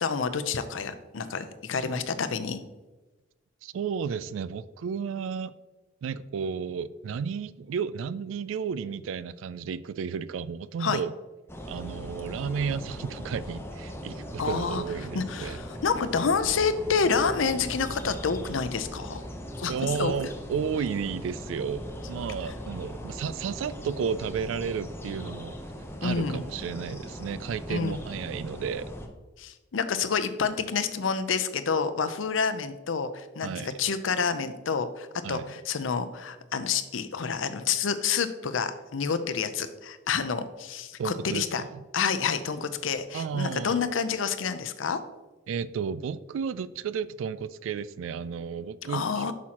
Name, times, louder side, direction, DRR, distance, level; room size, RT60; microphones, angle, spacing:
voice 1, 0.0-2.6 10.8-11.0 14.4-14.8 15.1-19.2 19.6-19.7 20.0-20.1 26.0-26.4 27.7-28.0 29.4-41.6 41.9-45.0 48.9-49.3, left 5 dB, 85° left, 0.6 m, -28 dB
voice 2, 3.6-5.6 6.0-11.1 11.7-15.6 19.7-25.5 26.0-28.9 33.4-33.7 35.2-35.5 41.0-41.7 43.1-43.8 45.5-49.3, right 6 dB, 90° right, 0.3 m, -32 dB
sound 1, 11.5-29.1, equal, 15° left, 0.7 m, -39 dB
8.3 x 6.2 x 2.9 m
head